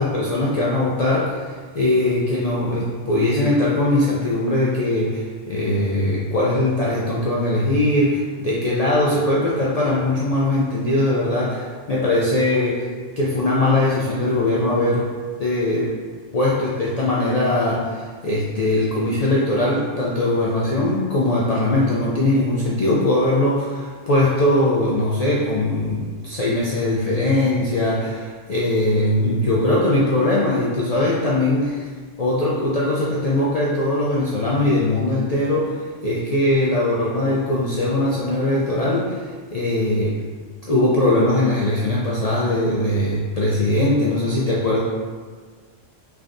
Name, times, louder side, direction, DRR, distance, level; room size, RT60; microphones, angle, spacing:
voice 1, 0.0-12.9 13.2-15.1 15.4-15.9 16.3-31.9 32.2-40.2 40.7-44.8, left 1 dB, 70° left, -6 dB, 0.3 m, -20 dB
3.5 x 3.4 x 2.5 m, 1.5 s
omnidirectional pair, 1.2 m